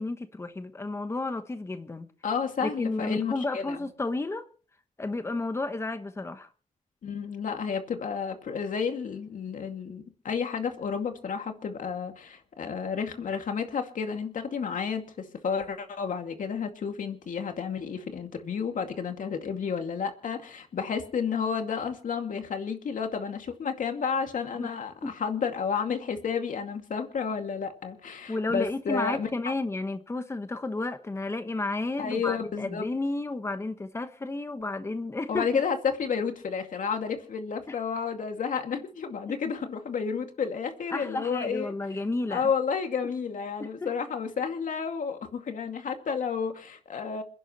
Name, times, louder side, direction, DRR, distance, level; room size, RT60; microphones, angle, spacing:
voice 1, 0.0-2.1 2.6-4.5 5.0-6.5 24.6-24.7 25.0-25.1 28.3-35.6 37.7-37.8 40.9-42.5 43.6-43.9, left 2 dB, 20° left, 1.2 m, -32 dB
voice 2, 2.2-3.8 7.0-29.5 32.0-32.8 35.3-41.7 42.3-47.2, left 6 dB, 90° left, 2.3 m, -31 dB
28.0 x 11.0 x 3.1 m
wide cardioid pair, 165°, 13 cm